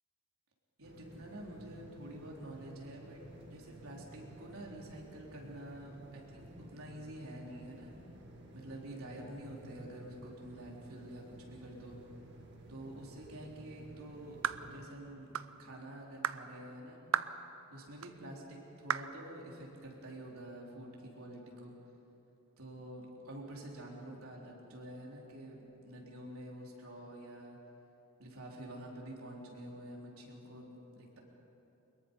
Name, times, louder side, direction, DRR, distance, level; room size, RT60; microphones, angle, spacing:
sound 1, 0.8-14.8, right 1 dB, 55° right, 2.1 m, -54 dB
voice 1, 0.8-3.2 3.5-7.9 8.5-12.0 12.7-15.3 15.6-17.0 17.7-21.7 22.6-27.6 28.2-31.2, right 1 dB, 90° right, -2 dB, 4.0 m, -48 dB
sound 2, 14.4-14.7 15.3-15.5 16.2-16.4 17.1-17.4 18.0-18.1 18.9-19.1, right 8 dB, 70° right, 0.6 m, -33 dB
23.5 x 22.0 x 5.6 m, 3.0 s
head